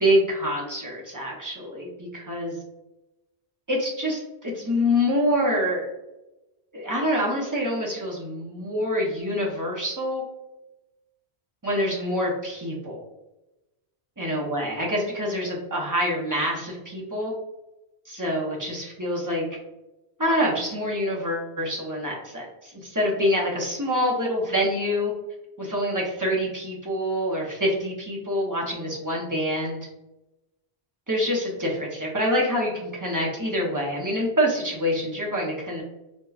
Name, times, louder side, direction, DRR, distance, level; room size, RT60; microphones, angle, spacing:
voice 1, 0.0-2.6 3.7-5.9 6.7-10.2 11.6-13.0 14.2-17.3 18.1-19.5 20.2-25.1 25.6-29.8 31.1-35.8, equal, 20° right, -3 dB, 0.7 m, -26 dB
4.3 x 2.2 x 2.4 m, 0.98 s
omnidirectional pair, 1.1 m